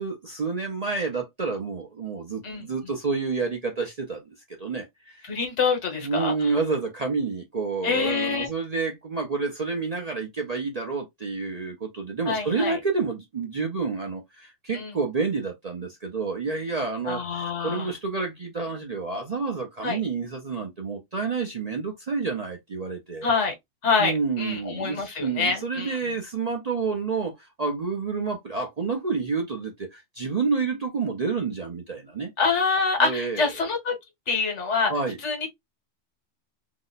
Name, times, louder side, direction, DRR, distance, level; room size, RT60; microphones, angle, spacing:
voice 1, 0.0-5.3 6.0-23.3 24.0-32.3 33.0-33.5 34.9-35.2, right 4 dB, 45° right, 0.6 m, -29 dB
voice 2, 5.2-6.5 7.8-8.5 12.3-12.8 14.7-14.9 17.1-17.9 19.8-20.0 23.2-23.5 23.8-26.0 32.4-34.0 34.3-34.9 35.2-35.5, left 4 dB, 65° left, 1.3 m, -26 dB
2.9 x 2.0 x 3.9 m
omnidirectional pair, 1.3 m